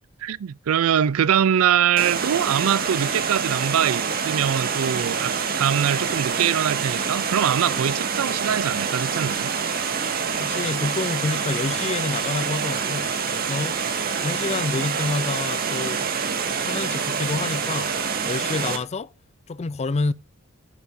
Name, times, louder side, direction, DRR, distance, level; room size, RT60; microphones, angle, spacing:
voice 1, 0.2-9.5, right 9 dB, 70° right, 0.4 m, -23 dB
Water, 2.0-18.8, right 6 dB, 45° right, 1.8 m, -26 dB
voice 2, 10.4-13.8 14.2-16.1 16.6-17.9 18.3-19.1 19.5-20.1, left 3 dB, 30° left, 0.4 m, -28 dB
11.0 x 10.5 x 2.7 m
head